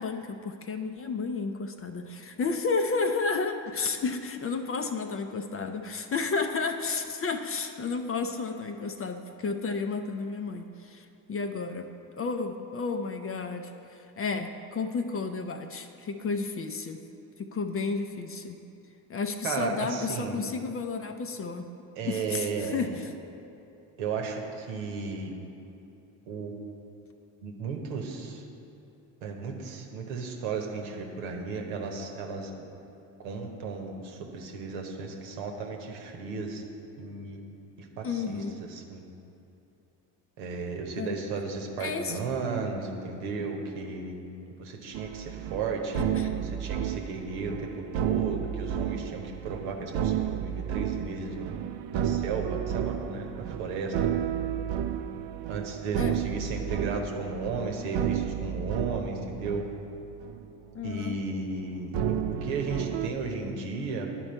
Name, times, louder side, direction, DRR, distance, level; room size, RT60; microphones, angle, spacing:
voice 1, 0.0-17.0 17.4-18.6 19.1-21.7 22.0-23.1 38.0-38.6 40.9-41.2 41.8-42.2 45.9-46.3 56.0-56.2 60.7-61.2, left 4 dB, 30° left, 7 dB, 0.5 m, -32 dB
voice 2, 19.4-20.4 22.0-22.9 24.0-25.3 26.3-26.5 27.4-28.4 29.2-32.5 33.2-36.6 37.0-37.4 37.8-39.0 40.4-44.1 44.6-47.7 47.9-51.5 51.9-54.1 55.5-59.6 60.8-64.1, right 4 dB, 75° right, 2 dB, 1.1 m, -34 dB
sound 1, 44.9-60.5 60.7-61.1 61.9-63.1, right 9 dB, 60° right, 0.5 m, -32 dB
10.5 x 4.5 x 4.4 m, 2.8 s
hypercardioid pair, 55°, 49 cm